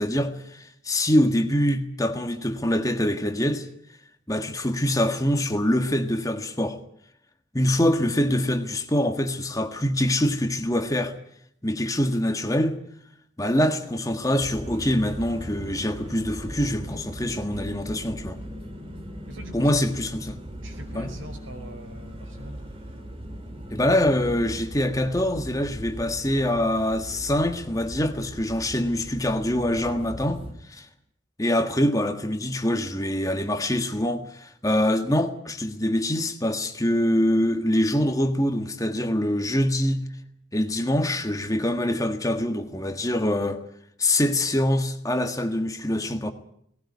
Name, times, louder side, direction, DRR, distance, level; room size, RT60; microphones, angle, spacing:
voice 1, 0.0-3.7 4.3-6.8 7.5-11.2 11.6-12.8 13.4-18.4 19.5-20.3 20.9-21.1 23.7-30.9 31.4-40.0 40.5-43.6 44.0-46.3, left 1 dB, 15° left, 1.6 m, -24 dB
sound 1, 14.4-30.5, equal, 25° right, 3.1 m, -39 dB
voice 2, 19.3-19.8 20.6-22.6, right 1 dB, 80° right, 5.3 m, -43 dB
18.5 x 18.0 x 9.6 m
head